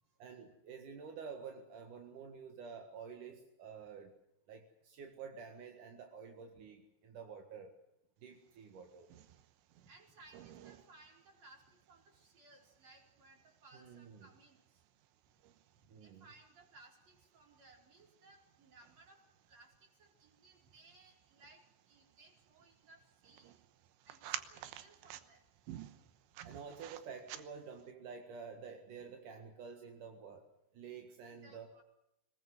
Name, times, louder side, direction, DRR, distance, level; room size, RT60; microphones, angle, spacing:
voice 1, 0.2-4.1 4.5-7.7 8.2-9.1 13.7-14.3 15.9-16.3 26.4-30.5 30.7-31.8, right 6 dB, 55° right, 4 dB, 2.4 m, -50 dB
sound 1, 8.5-27.9, right 12 dB, 75° right, 3.1 m, -54 dB
voice 2, 9.9-14.8 15.8-19.2 19.5-23.6 24.1-25.4 31.3-31.8, right 2 dB, 35° right, 1 dB, 5.2 m, -62 dB
23.0 x 20.0 x 8.0 m, 0.83 s
omnidirectional pair, 5.7 m